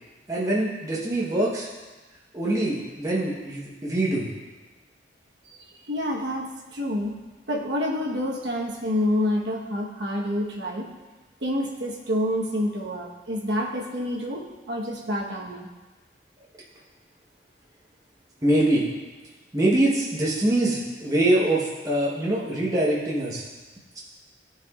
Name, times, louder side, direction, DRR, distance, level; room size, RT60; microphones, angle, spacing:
voice 1, 0.3-1.7 2.3-4.3 18.4-18.9 19.5-23.4 23.9-24.0, right 1 dB, 20° right, -5 dB, 1.0 m, -24 dB
voice 2, 5.9-7.2 7.5-10.9 11.4-15.7, left 1 dB, 65° right, -2 dB, 1.1 m, -28 dB
13.5 x 4.8 x 2.4 m, 1.2 s
head